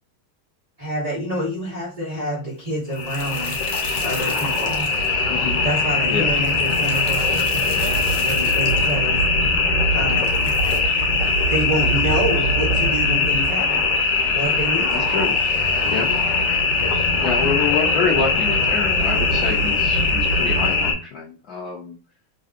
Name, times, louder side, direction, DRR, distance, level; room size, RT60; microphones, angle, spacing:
voice 1, 0.8-3.6 4.0-4.9 5.6-9.2 9.9-10.6 11.5-13.9 14.3-15.1 18.0-18.4, right 1 dB, 25° right, -7 dB, 1.0 m, -27 dB
sound 1, 2.9-20.9, left 3 dB, 70° left, 1.3 m, -20 dB
voice 2, 5.3-5.6 6.1-6.3 14.9-15.3 15.9-16.1 17.2-21.9, left 5 dB, 85° left, -2 dB, 0.8 m, -26 dB
3.4 x 2.6 x 2.4 m, 0.34 s
omnidirectional pair, 2.3 m